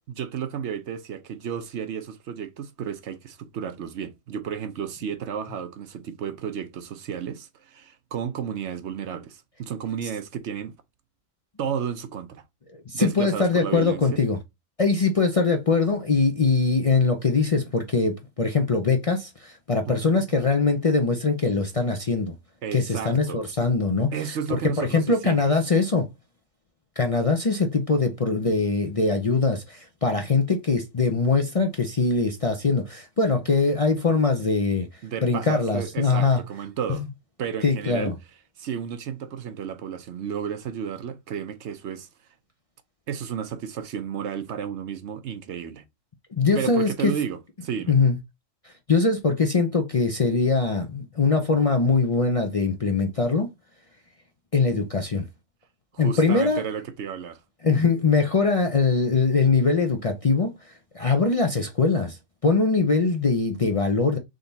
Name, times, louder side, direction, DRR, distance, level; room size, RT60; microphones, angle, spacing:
voice 1, 0.1-10.8 11.6-12.4 12.9-14.2 19.9-20.2 22.6-23.4 24.1-25.5 35.0-37.1 37.4-38.1 38.6-42.1 43.1-45.8 46.5-47.9 55.9-57.4, right 8 dB, 65° right, 0.9 m, -32 dB
voice 2, 12.7-14.4 14.8-22.3 22.7-24.1 24.5-26.1 27.0-34.9 35.2-36.4 36.9-37.1 37.6-38.1 46.3-47.1 47.9-48.2 48.6-53.5 54.5-55.2 56.0-56.6 57.6-64.2, left 4 dB, 40° left, 0.5 m, -22 dB
3.8 x 3.4 x 4.0 m
omnidirectional pair, 1.3 m